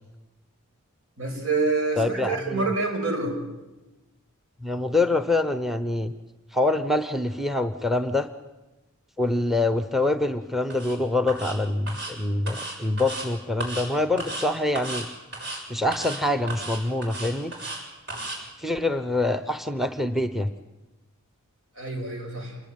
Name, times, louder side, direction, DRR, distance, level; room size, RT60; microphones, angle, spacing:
voice 1, 1.2-3.4 21.8-22.6, right 3 dB, 70° right, 4 dB, 6.4 m, -27 dB
voice 2, 2.0-2.7 4.6-6.1 6.5-8.3 9.2-15.1 15.4-17.5 18.6-20.5, left 2 dB, ahead, 10 dB, 0.8 m, -25 dB
sound 1, 10.7-11.0 11.3-11.6 11.9-12.1 12.5-13.3 13.6-13.9 14.2-14.5 14.8-15.1 15.3-15.6 15.9-16.2 16.5-17.8 18.1-18.4, right 2 dB, 55° right, 7.0 m, -34 dB
26.5 x 21.0 x 9.3 m, 1.1 s
head